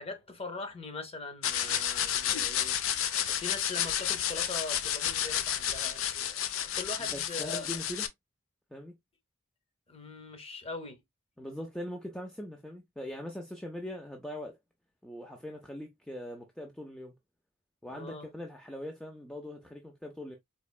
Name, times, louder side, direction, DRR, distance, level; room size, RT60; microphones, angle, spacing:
voice 1, 0.0-2.8 3.3-7.7 9.9-11.0 17.9-18.3, left 3 dB, 30° left, 0.7 m, -41 dB
sound 1, 1.4-8.1, left 10 dB, 80° left, 0.5 m, -31 dB
voice 2, 7.0-8.1 8.7-9.0 11.4-14.6 15.0-17.1 17.8-20.4, left 1 dB, 5° left, 0.4 m, -41 dB
4.2 x 2.8 x 2.2 m
head